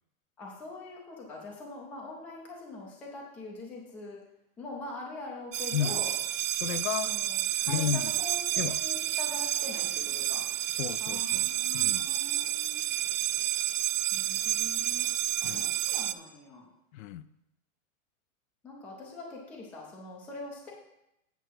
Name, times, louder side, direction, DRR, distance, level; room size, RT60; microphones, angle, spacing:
voice 1, 0.4-4.2 4.6-6.1 7.0-10.4 11.0-12.8 14.1-15.1 15.4-16.7 18.6-20.7, left 2 dB, 5° left, -2 dB, 0.4 m, -43 dB
sound 1, 5.5-16.1, right 14 dB, 60° right, 0.5 m, -30 dB
voice 2, 6.5-7.1 7.7-8.1 8.6-8.8 10.7-12.1 15.4-15.7 16.9-17.3, left 10 dB, 70° left, 14 dB, 0.6 m, -33 dB
8.1 x 6.6 x 4.6 m, 0.83 s
supercardioid pair, 160°, 42 cm